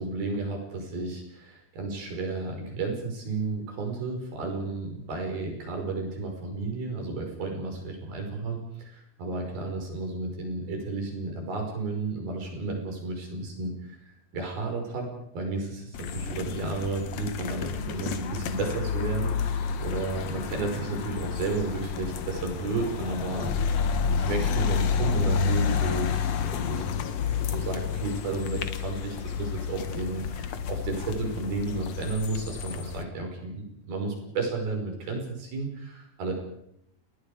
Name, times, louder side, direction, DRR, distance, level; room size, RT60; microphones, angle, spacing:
voice 1, 0.0-14.0 14.3-23.5 24.2-36.3, right 3 dB, 80° right, 2 dB, 7.1 m, -32 dB
sound 1, 15.9-33.0, left 6 dB, 60° left, 2.0 m, -30 dB
29.0 x 21.0 x 5.0 m, 0.75 s
omnidirectional pair, 4.2 m